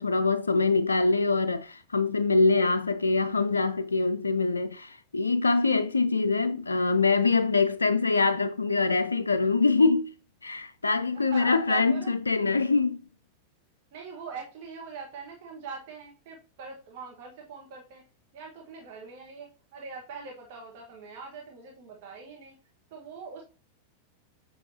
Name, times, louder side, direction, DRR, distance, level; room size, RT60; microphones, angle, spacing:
voice 1, 0.0-10.1 10.4-13.0, left 3 dB, 75° left, 0.3 m, -24 dB
voice 2, 11.1-12.1 13.9-18.0 18.3-22.6 22.9-23.4, right 5 dB, 50° right, 1.4 m, -42 dB
7.3 x 5.9 x 2.8 m
figure-of-eight pair, 90°, 0 cm